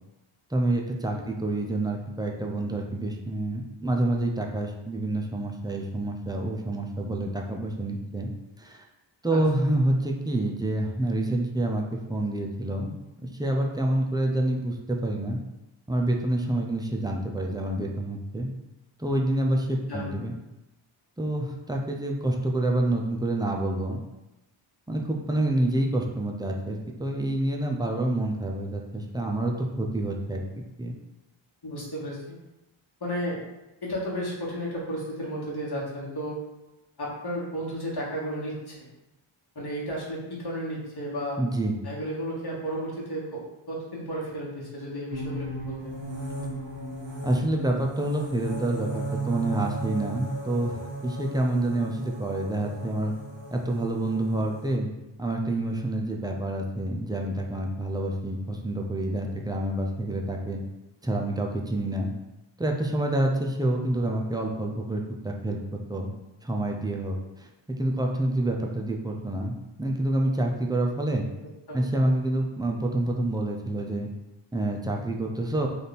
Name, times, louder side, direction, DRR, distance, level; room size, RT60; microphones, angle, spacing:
voice 1, 0.5-8.3 8.6-8.8 9.2-15.4 15.9-18.5 19.0-20.4 21.2-24.0 24.9-30.4 30.8-30.9 41.4-41.8 47.2-53.1 53.5-54.9 55.2-60.6 61.0-62.1 62.6-65.6 65.9-66.1 66.4-67.5 67.8-71.2 71.7-74.1 74.5-75.7, right 1 dB, 10° right, 0 dB, 0.5 m, -27 dB
voice 2, 31.6-32.4 33.0-33.4 33.8-36.4 37.0-38.9 39.5-41.4 41.8-43.4 43.7-45.9 59.3-59.4 71.4-71.8, equal, 50° left, -5 dB, 1.4 m, -33 dB
sound 1, 45.1-54.7, right 2 dB, 65° right, 1.1 m, -36 dB
3.4 x 2.7 x 4.1 m, 0.99 s
wide cardioid pair, 55°, 49 cm